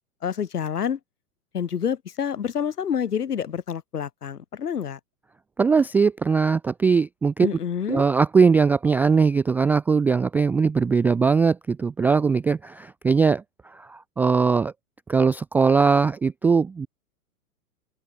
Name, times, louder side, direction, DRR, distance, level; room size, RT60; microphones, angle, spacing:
voice 1, 0.2-1.0 1.5-5.0 7.4-8.0, left 8 dB, 85° left, 6.4 m, -28 dB
voice 2, 5.6-7.5 7.9-13.4 13.9-14.7 15.1-16.9, right 5 dB, 5° right, 0.3 m, -20 dB
open air
hypercardioid pair, 125°, 45 cm